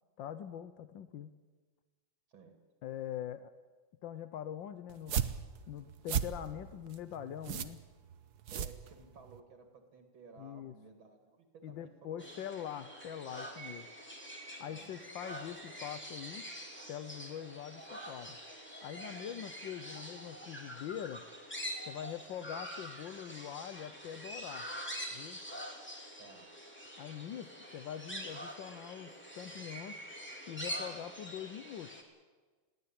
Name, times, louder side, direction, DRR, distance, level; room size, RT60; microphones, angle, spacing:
voice 1, 0.2-1.3 2.8-3.5 4.0-5.2 5.7-7.8 10.4-10.7 11.6-13.9 14.6-16.5 16.9-18.4 18.8-21.2 21.8-24.7 25.1-25.4 27.0-30.0 30.5-31.9, left 10 dB, 70° left, 11 dB, 1.5 m, -43 dB
sound 1, 4.9-9.4, right 8 dB, 55° right, 1.3 m, -37 dB
voice 2, 8.5-12.2 14.7-14.9 26.2-26.5, right 4 dB, 75° right, 5 dB, 3.0 m, -56 dB
sound 2, 12.2-32.0, equal, 5° left, 2.9 m, -45 dB
21.5 x 16.5 x 8.8 m, 1.3 s
omnidirectional pair, 2.2 m